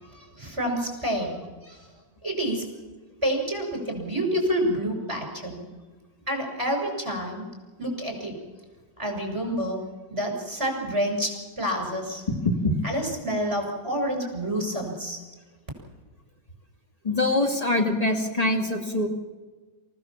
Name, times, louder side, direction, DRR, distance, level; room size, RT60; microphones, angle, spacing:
voice 1, 0.0-1.4 1.6-1.8 2.2-2.6 3.2-5.7 6.3-7.4 7.8-8.4 9.0-9.8 10.1-12.2 12.8-15.2, equal, 15° right, 3 dB, 6.5 m, -28 dB
voice 2, 12.3-12.7 17.0-19.1, left 2 dB, 20° left, 2 dB, 2.5 m, -24 dB
27.5 x 16.0 x 7.3 m, 1.3 s
omnidirectional pair, 2.0 m